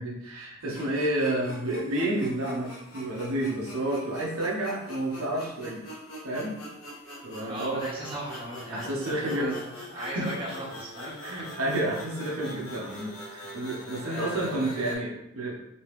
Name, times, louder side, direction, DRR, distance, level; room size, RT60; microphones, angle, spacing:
voice 1, 0.0-5.8 6.2-6.5 7.2-7.8 8.7-9.5 10.0-10.2 11.2-15.5, right 1 dB, 80° right, -3 dB, 0.8 m, -30 dB
sound 1, 0.6-15.0, left 1 dB, 75° left, 1.1 m, -43 dB
voice 2, 7.5-11.2 14.0-14.8, right 1 dB, 25° right, -7 dB, 1.2 m, -37 dB
3.1 x 3.0 x 3.1 m, 0.84 s
head